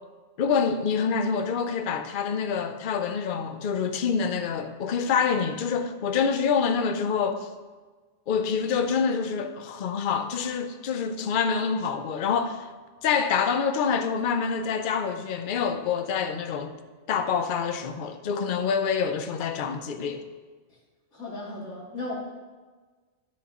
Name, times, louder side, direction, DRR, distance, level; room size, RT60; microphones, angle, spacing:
voice 1, 0.4-7.5 8.3-12.7 13.0-16.8 17.1-20.2, left 6 dB, 50° left, 0.7 m, -26 dB
voice 2, 21.1-22.1, left 2 dB, 70° left, 2.6 m, -35 dB
10.5 x 7.1 x 3.0 m
omnidirectional pair, 1.3 m